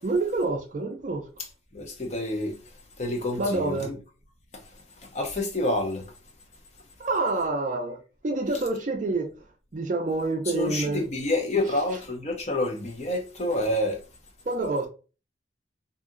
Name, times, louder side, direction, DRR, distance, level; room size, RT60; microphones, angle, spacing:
voice 1, 0.0-1.3 3.4-3.9 7.0-9.3 9.7-11.0 11.7-11.8 14.5-14.9, right 2 dB, 40° right, 0.4 m, -27 dB
voice 2, 1.7-2.5 3.0-3.9 5.0-6.0 10.5-14.0, left 1 dB, 35° left, 0.6 m, -28 dB
2.8 x 2.6 x 2.4 m
head